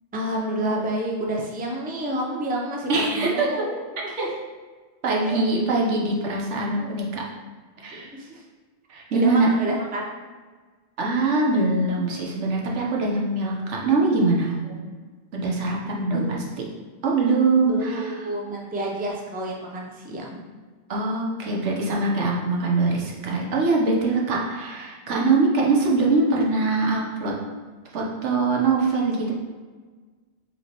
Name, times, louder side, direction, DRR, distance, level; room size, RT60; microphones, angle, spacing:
voice 1, 0.1-4.4 5.2-5.4 6.8-6.9 7.9-8.4 9.1-10.1 14.7-14.8 16.1-16.7 17.6-20.4, right 1 dB, 15° right, -1 dB, 0.4 m, -29 dB
voice 2, 2.9-3.5 4.2-4.3 5.0-7.2 7.8-8.1 8.9-9.5 11.0-14.6 15.3-16.4 17.0-18.1 20.9-27.4 27.9-29.3, right 3 dB, 90° right, -2 dB, 1.2 m, -23 dB
5.2 x 3.2 x 2.9 m, 1.4 s
omnidirectional pair, 1.2 m